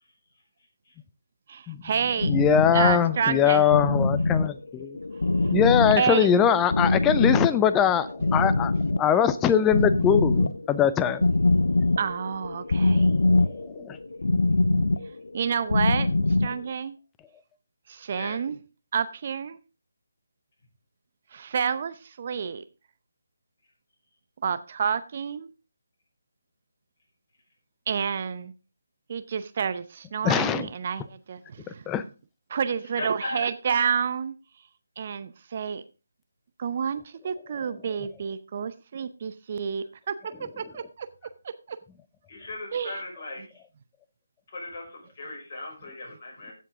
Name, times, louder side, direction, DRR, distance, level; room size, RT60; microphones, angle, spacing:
voice 1, 1.5-2.3 2.7-3.6 5.3-5.5 6.0-6.3 12.0-13.1 15.3-16.1 16.4-17.0 17.9-18.6 18.9-19.6 21.3-22.6 24.4-25.5 27.9-28.5 29.1-31.9 32.5-34.3 35.0-35.8 36.6-40.2 40.6-41.1 41.7-41.8 42.7-43.0, right 7 dB, 35° right, 13 dB, 0.7 m, -29 dB
sound 1, 2.2-16.6, left 2 dB, 65° left, 0.6 m, -24 dB
voice 2, 2.3-5.0 5.5-8.7 9.0-11.2 13.5-14.0 30.2-30.7 31.9-32.0, left 8 dB, 10° left, 13 dB, 0.5 m, -22 dB
voice 3, 33.0-33.4 42.3-43.5 44.5-46.5, left 2 dB, 35° left, -2 dB, 5.6 m, -37 dB
15.0 x 7.4 x 3.6 m, 0.32 s
figure-of-eight pair, 150°, 0 cm